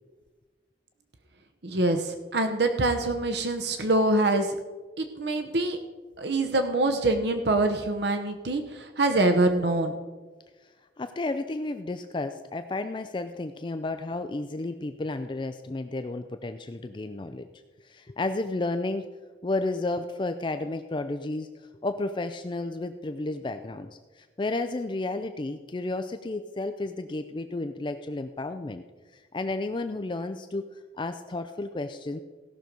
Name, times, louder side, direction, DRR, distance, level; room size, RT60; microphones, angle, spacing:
voice 1, 1.6-4.6 5.0-5.8 6.2-10.0, right 2 dB, 70° right, 6 dB, 0.9 m, -25 dB
voice 2, 11.0-17.5 17.8-19.1 19.4-28.8 29.1-30.6 31.0-32.2, left 2 dB, 25° left, 8 dB, 0.4 m, -32 dB
16.5 x 6.3 x 5.2 m, 1.3 s
head